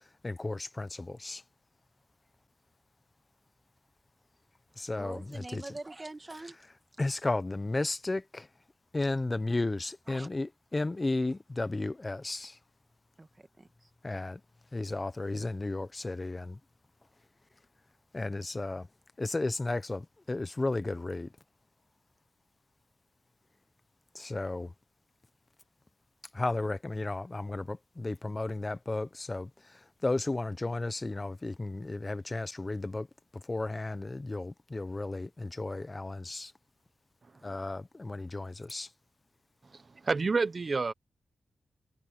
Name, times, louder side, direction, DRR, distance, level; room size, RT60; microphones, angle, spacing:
voice 1, 0.2-1.4 4.8-5.6 7.0-8.5 8.9-12.6 14.0-14.4 14.7-16.6 18.1-18.9 19.2-21.3 24.1-24.7 26.3-29.5 30.0-33.1 33.5-36.5 37.4-38.9, left 2 dB, 30° left, 1.0 m, -33 dB
voice 2, 5.0-6.6 10.1-10.3 13.2-13.9, right 2 dB, 30° right, 1.9 m, -44 dB
voice 3, 39.6-40.9, right 4 dB, 45° right, 0.9 m, -29 dB
cardioid pair, 60°, 0 cm